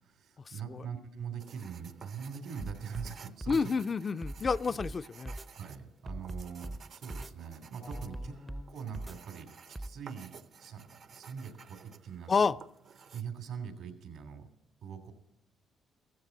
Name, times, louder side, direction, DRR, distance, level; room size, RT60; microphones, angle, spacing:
voice 1, 0.0-3.7 4.6-4.8 5.5-8.3 8.7-12.5 13.1-14.5 14.8-15.1, right 7 dB, 80° right, 6 dB, 2.7 m, -43 dB
sound 1, 1.4-13.2, right 6 dB, 60° right, 0.7 m, -54 dB
sound 2, 2.6-3.1 3.4-3.6 4.2-5.0 5.3-5.5 6.1-6.8 7.1-7.3 7.9-8.6 8.9-9.2 9.8-9.9, right 1 dB, 15° right, 0.5 m, -40 dB
voice 2, 3.5-5.3 12.3-12.6, left 5 dB, 40° left, 12 dB, 0.4 m, -29 dB
15.5 x 14.5 x 3.9 m, 0.83 s
supercardioid pair, 65°, 0 cm